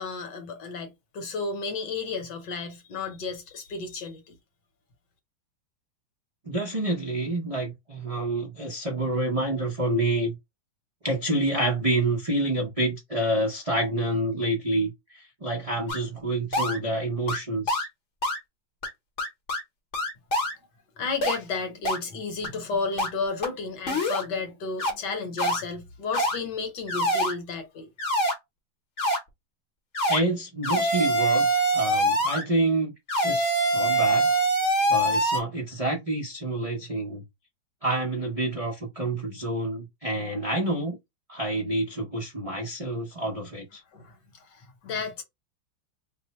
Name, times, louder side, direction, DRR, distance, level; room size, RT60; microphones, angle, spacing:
voice 1, 0.0-4.3 21.0-27.9 43.9-45.2, left 4 dB, 65° left, 1.4 m, -33 dB
voice 2, 6.5-10.3 11.0-17.9 30.1-31.5 31.7-32.9 33.2-34.3 34.9-37.2 37.8-41.0 41.3-43.8, right 1 dB, 55° right, 0.3 m, -28 dB
sound 1, 15.9-16.0 16.5-16.8 17.3-17.4 17.7-17.9 18.2-18.4 18.8-18.9 19.2-19.6 19.9-20.5 21.2-21.4 21.8-22.0 22.4-22.5 23.0-23.1 23.4-23.5 23.9-24.2 24.8-24.9 25.4-25.6 26.1-26.4 26.9-27.3 28.0-28.3 29.0-29.2 29.9-30.2 30.6-32.4 33.1-35.4, right 1 dB, 50° left, 1.0 m, -24 dB
3.2 x 2.1 x 4.1 m
omnidirectional pair, 2.2 m